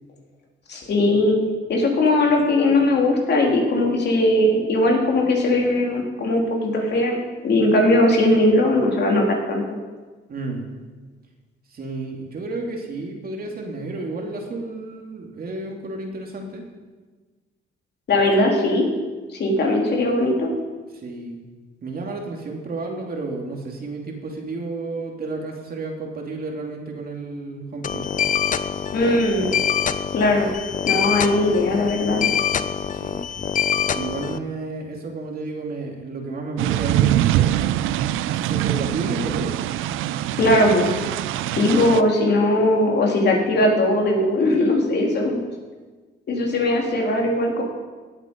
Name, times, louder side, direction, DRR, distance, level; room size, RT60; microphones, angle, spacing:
voice 1, 0.7-1.4 1.7-7.2 7.4-9.6 18.1-18.9 19.4-20.6 28.9-29.5 30.1-30.5 30.9-32.2 40.4-40.9 41.6-45.4 46.3-47.6, left 1 dB, 60° left, 0 dB, 3.1 m, -19 dB
voice 2, 10.3-10.7 11.7-16.6 20.9-21.4 21.8-28.1 32.9-33.3 33.9-37.5 38.3-39.6, right 3 dB, 50° right, 1 dB, 2.6 m, -31 dB
sound 1, 27.8-34.4, left 8 dB, 40° left, 0.5 m, -25 dB
sound 2, 36.6-42.0, right 13 dB, 90° right, 0.4 m, -23 dB
17.0 x 8.1 x 5.2 m, 1.3 s
cardioid pair, 90°, 20 cm